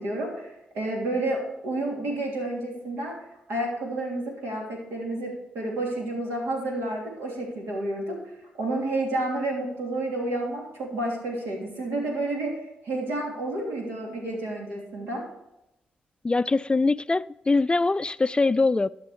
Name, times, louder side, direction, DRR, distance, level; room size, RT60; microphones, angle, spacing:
voice 1, 0.0-3.2 3.5-8.2 8.6-15.2, right 2 dB, 80° right, 3.0 m, -30 dB
voice 2, 16.2-18.9, left 3 dB, 25° left, 0.3 m, -23 dB
13.0 x 5.9 x 5.0 m
supercardioid pair, 45°, 4 cm